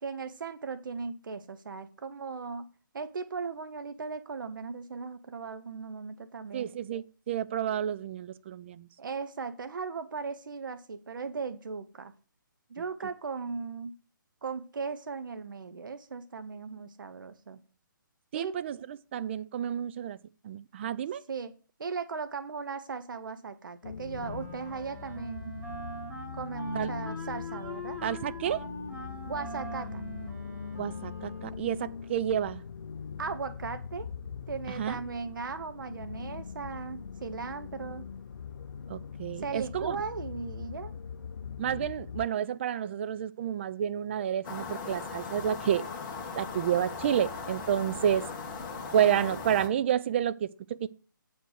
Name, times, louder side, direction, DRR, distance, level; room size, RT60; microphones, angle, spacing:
voice 1, 0.0-2.7 2.9-6.7 9.0-12.1 12.7-13.9 14.4-17.6 18.3-18.6 21.3-25.5 26.3-28.0 29.3-30.0 33.2-34.1 34.5-38.0 39.4-40.9, right 5 dB, 70° right, 0.9 m, -37 dB
voice 2, 6.5-8.9 18.3-20.2 20.4-21.2 26.7-26.9 28.0-28.6 30.8-32.6 34.8-35.0 38.9-40.0 41.6-45.8 46.3-48.2 48.9-50.9, right 9 dB, 35° right, 0.4 m, -30 dB
sound 1, 23.8-42.3, left 6 dB, 75° left, 0.6 m, -41 dB
Wind instrument woodwind instrument, 24.2-31.7, equal, 15° right, 1.6 m, -43 dB
sound 2, 44.4-49.7, left 4 dB, 25° left, 1.7 m, -38 dB
7.9 x 5.1 x 6.5 m
hypercardioid pair, 150°, 11 cm